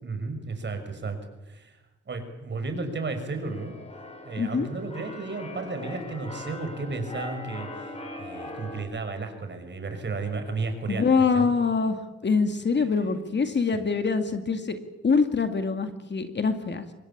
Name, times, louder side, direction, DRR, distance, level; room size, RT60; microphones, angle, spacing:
voice 1, 0.0-1.2 1.4-1.8 2.1-3.7 4.2-11.5 12.8-13.2 13.7-13.9, right 3 dB, 35° right, 7 dB, 5.8 m, -33 dB
Keyboard (musical), 2.9-8.8, left 2 dB, 20° left, 5.0 m, -41 dB
voice 2, 4.4-4.7 10.9-14.8 15.0-16.8, left 5 dB, 35° left, 8 dB, 2.3 m, -24 dB
24.5 x 20.5 x 8.7 m, 1.0 s
cardioid pair, 90°, 30 cm